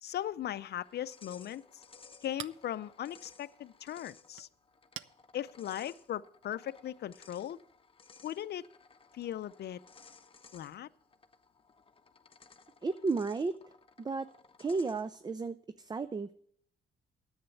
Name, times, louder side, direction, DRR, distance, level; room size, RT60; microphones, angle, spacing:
voice 1, 0.0-1.6 2.2-4.5 5.3-7.6 8.2-8.7 9.1-9.8 10.5-10.9, left 11 dB, 55° left, 16 dB, 0.5 m, -38 dB
sound 1, 0.8-15.3, left 4 dB, 25° left, 0.8 m, -59 dB
Chink clink, 1.1-6.6, right 13 dB, 75° right, 0.5 m, -53 dB
voice 2, 12.8-13.5 14.0-14.3 14.6-16.3, right 4 dB, 20° right, 13 dB, 0.4 m, -33 dB
10.0 x 8.1 x 6.9 m, 0.62 s
cardioid pair, 90°, 20 cm